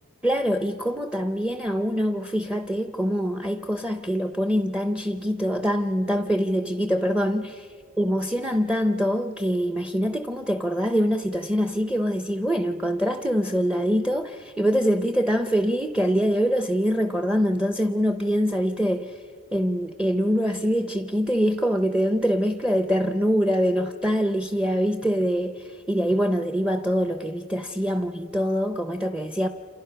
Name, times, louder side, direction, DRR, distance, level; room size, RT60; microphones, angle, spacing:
voice 1, 0.2-7.6 8.0-19.2 19.5-29.5, equal, 5° right, 8 dB, 0.6 m, -24 dB
29.5 x 28.0 x 5.7 m, 2.2 s
head